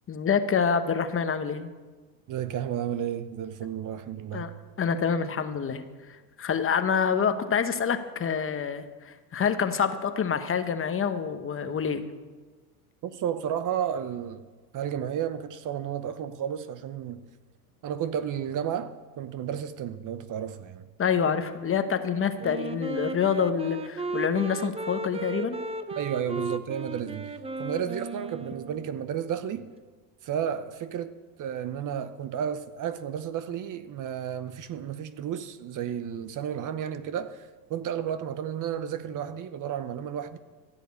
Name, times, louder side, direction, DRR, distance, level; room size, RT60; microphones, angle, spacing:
voice 1, 0.1-1.7 4.3-4.5 4.8-5.8 6.4-12.0 21.0-25.6, left 6 dB, 25° left, 1.0 m, -27 dB
voice 2, 2.3-4.5 13.0-14.4 14.7-17.2 17.8-20.9 26.0-29.7 30.2-31.1 31.4-40.4, right 9 dB, 40° right, 0.8 m, -32 dB
Wind instrument woodwind instrument, 22.4-29.1, right 3 dB, 10° right, 0.6 m, -35 dB
15.0 x 6.8 x 8.4 m
supercardioid pair, 100°, 49 cm